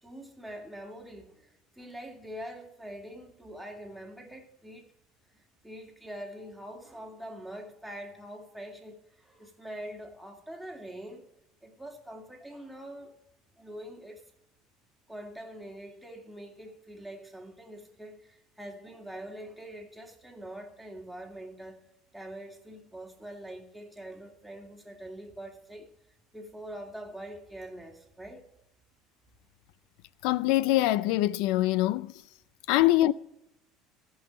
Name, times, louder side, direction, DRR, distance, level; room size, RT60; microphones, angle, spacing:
voice 1, 0.0-4.9 5.3-11.2 11.6-13.1 13.6-14.2 15.1-21.8 22.1-25.9 26.3-28.5, right 1 dB, ahead, 2.4 m, -44 dB
voice 2, 30.2-32.1 32.7-33.1, left 16 dB, 75° left, 0.5 m, -24 dB
14.5 x 5.6 x 8.7 m
supercardioid pair, 105°, 0 cm